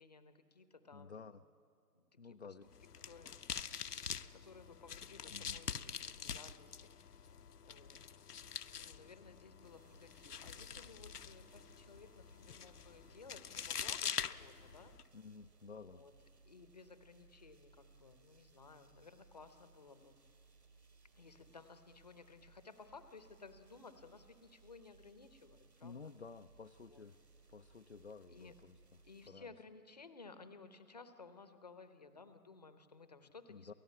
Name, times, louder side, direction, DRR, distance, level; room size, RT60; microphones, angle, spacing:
voice 1, 0.0-1.3 1.9-2.6 3.0-3.3 4.3-5.7 6.0-7.4 7.6-8.1 8.6-14.9 15.9-16.1 16.5-20.2 21.2-26.0 26.9-27.1 28.3-28.5 29.0-33.7, left 4 dB, 25° left, 11 dB, 0.8 m, -57 dB
voice 2, 0.9-1.4 2.2-2.7 5.3-5.6 15.1-16.1 25.8-27.2 27.5-29.5 33.5-33.7, left 4 dB, 45° left, 8 dB, 0.5 m, -53 dB
sound 1, 2.7-15.0, left 7 dB, 70° left, 0.9 m, -45 dB
sound 2, 9.6-29.3, right 4 dB, 75° right, 4.6 m, -66 dB
28.5 x 15.0 x 8.4 m, 2.4 s
figure-of-eight pair, 155°, 49 cm